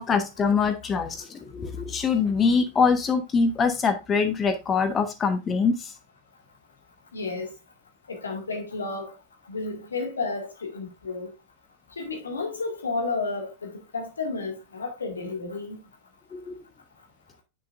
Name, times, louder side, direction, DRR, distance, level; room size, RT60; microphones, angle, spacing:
voice 1, 0.0-5.9 16.3-16.6, left 5 dB, 20° left, 1.1 m, -24 dB
voice 2, 7.1-7.5 8.1-9.2 9.5-11.3 12.0-15.8, left 3 dB, 75° left, 2.0 m, -32 dB
7.7 x 6.8 x 2.5 m
figure-of-eight pair, 90°, 0 cm